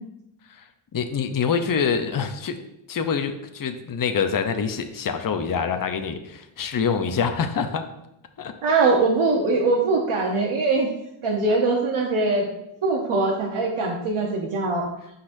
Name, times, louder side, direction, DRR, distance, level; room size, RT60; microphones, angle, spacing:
voice 1, 0.9-2.6 2.9-7.8 8.4-8.5, left 6 dB, 45° left, 7 dB, 0.7 m, -25 dB
voice 2, 8.6-10.9 11.2-12.5 12.8-14.9, right 3 dB, 85° right, -1 dB, 1.0 m, -22 dB
12.0 x 4.1 x 2.6 m, 0.84 s
wide cardioid pair, 100°, 48 cm